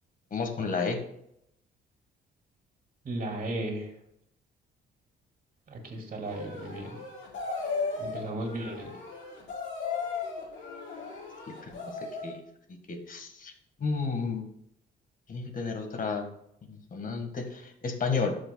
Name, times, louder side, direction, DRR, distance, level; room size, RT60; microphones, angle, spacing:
voice 1, 0.3-1.0 11.6-12.4 12.9-13.5 13.8-14.4 15.3-16.3 16.7-18.3, left 4 dB, 45° left, 5 dB, 1.7 m, -32 dB
voice 2, 3.0-3.9 5.7-7.0 8.0-8.9, right 1 dB, 45° right, 1 dB, 2.6 m, -35 dB
sound 1, 6.2-12.4, left 4 dB, 70° left, 3.7 m, -36 dB
12.5 x 6.9 x 2.3 m, 0.75 s
cardioid pair, 90°, 20 cm